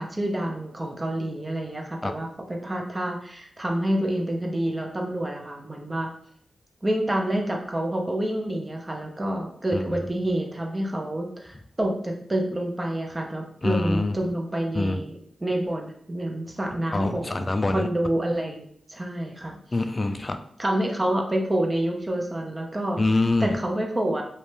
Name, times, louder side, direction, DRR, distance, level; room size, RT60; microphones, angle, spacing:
voice 1, 0.0-6.1 6.8-17.4 17.7-19.6 20.6-23.0 23.4-24.2, right 1 dB, 25° right, 2 dB, 0.6 m, -28 dB
voice 2, 13.6-14.2 14.7-15.0 16.9-17.9 19.7-20.4 23.0-23.6, left 2 dB, 40° left, 8 dB, 0.3 m, -25 dB
2.6 x 2.2 x 3.2 m, 0.64 s
supercardioid pair, 40°, 0 cm